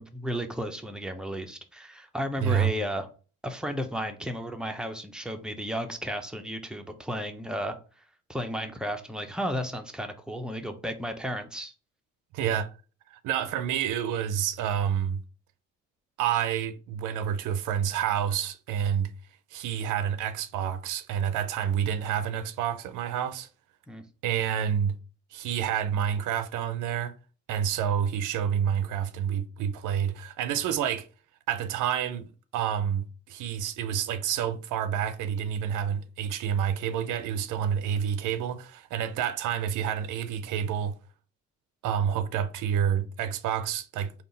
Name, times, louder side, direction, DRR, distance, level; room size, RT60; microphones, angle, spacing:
voice 1, 0.0-3.1 3.4-7.8 8.3-11.7 23.9-24.0, equal, 5° right, 0.6 m, -33 dB
voice 2, 2.4-2.7 12.3-12.7 13.1-15.2 16.2-19.1 19.5-23.5 24.2-25.0 25.3-27.1 27.5-31.1 31.5-40.9 41.8-44.2, right 9 dB, 90° right, 0.5 m, -28 dB
3.7 x 2.4 x 3.9 m
cardioid pair, 90°, 30 cm